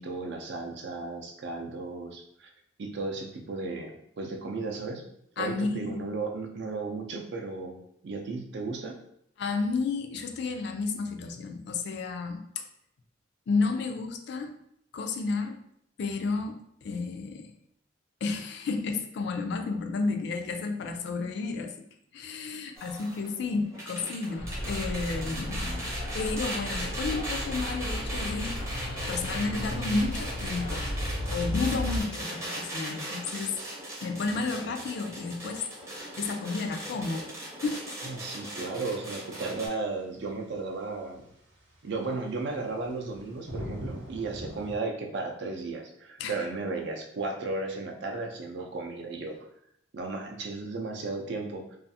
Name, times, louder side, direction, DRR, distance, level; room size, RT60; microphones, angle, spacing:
voice 1, 0.0-2.5 2.8-5.0 5.4-9.0 38.0-41.2 41.8-49.4 49.9-51.8, right 3 dB, 60° right, 3 dB, 0.4 m, -35 dB
voice 2, 5.4-6.1 9.4-12.6 13.5-14.5 14.9-15.6 16.0-17.5 18.2-21.7 22.1-28.6 29.1-30.9 31.3-33.6 34.0-35.6 36.2-37.3 37.6-38.1 46.2-46.4, left 4 dB, 60° left, 4 dB, 0.3 m, -32 dB
sound 1, 22.8-39.7, right 1 dB, 15° right, 0.6 m, -38 dB
sound 2, 24.4-32.0, left 1 dB, 90° left, 0.9 m, -34 dB
sound 3, 40.3-40.4 40.7-40.8 42.3-44.8, equal, 90° right, 0.7 m, -40 dB
2.4 x 2.4 x 2.6 m, 0.72 s
head